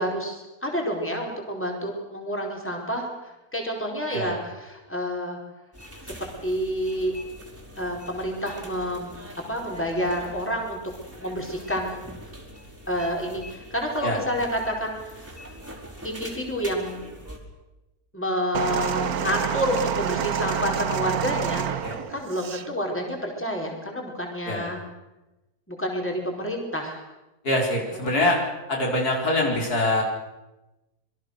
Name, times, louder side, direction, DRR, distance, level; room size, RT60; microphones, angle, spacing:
voice 1, 0.0-5.4 6.1-7.1 7.8-9.2 9.5-10.8 11.1-12.1 12.9-15.1 16.0-17.1 18.1-21.7 22.1-24.8 25.7-27.0, equal, 5° left, 0 dB, 4.6 m, -29 dB
sound 1, 5.7-17.4, equal, 10° right, 4.7 m, -43 dB
sound 2, 18.5-22.7 23.6-23.7, right 8 dB, 70° right, 1.5 m, -28 dB
voice 2, 27.4-28.4 28.7-30.0, left 1 dB, 70° left, 0 dB, 5.0 m, -24 dB
27.0 x 22.5 x 6.6 m, 1.0 s
omnidirectional pair, 1.7 m